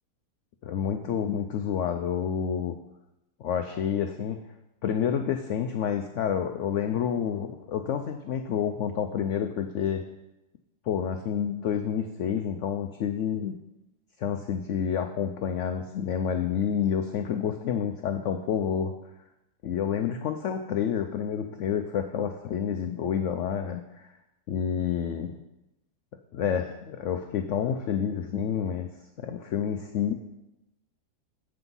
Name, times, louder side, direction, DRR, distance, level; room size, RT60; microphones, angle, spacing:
voice 1, 0.6-2.8 3.4-4.4 4.8-10.0 10.9-13.5 14.2-18.9 19.6-24.1 24.5-25.3 26.3-28.9 29.2-30.1, left 8 dB, 80° left, 6 dB, 0.6 m, -29 dB
7.8 x 5.9 x 5.4 m, 0.93 s
omnidirectional pair, 1.8 m